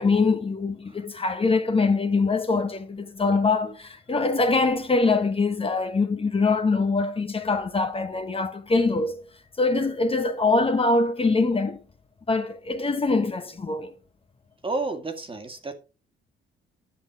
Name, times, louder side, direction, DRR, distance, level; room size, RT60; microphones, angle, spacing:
voice 1, 0.0-9.2 9.6-11.8 12.3-13.9, left 3 dB, 30° left, 1.3 m, -23 dB
voice 2, 14.6-15.7, right 3 dB, 25° right, 2.0 m, -30 dB
11.0 x 6.5 x 4.8 m
cardioid pair, 90°, 20 cm